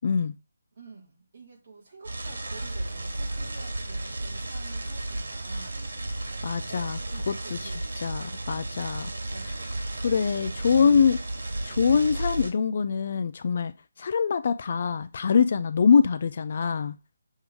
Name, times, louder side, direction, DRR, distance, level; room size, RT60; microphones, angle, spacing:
voice 1, 0.0-0.3 6.4-7.0 7.3-7.7 8.0-9.1 10.0-11.2 11.6-13.7 14.0-17.0, left 6 dB, 35° left, 0.3 m, -24 dB
voice 2, 0.7-5.9 6.7-7.8 9.3-9.8 10.4-10.9, right 3 dB, 35° right, 2.1 m, -48 dB
sound 1, 2.0-12.5, right 2 dB, 80° right, 1.8 m, -33 dB
6.8 x 3.6 x 4.7 m
hypercardioid pair, 175°, 0 cm